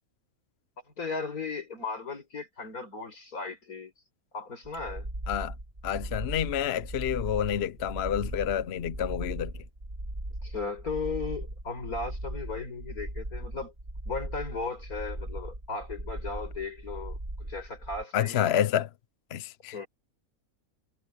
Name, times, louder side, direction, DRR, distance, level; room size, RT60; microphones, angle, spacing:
voice 1, 1.0-3.9 4.3-5.1 10.4-13.7 14.1-18.6 19.7-19.9, left 4 dB, 80° left, 5.6 m, -36 dB
sound 1, 4.6-18.0, right 1 dB, 30° right, 3.8 m, -38 dB
voice 2, 5.8-9.5 18.1-18.9 19.3-19.8, left 10 dB, 55° left, 0.8 m, -29 dB
omnidirectional pair, 1.5 m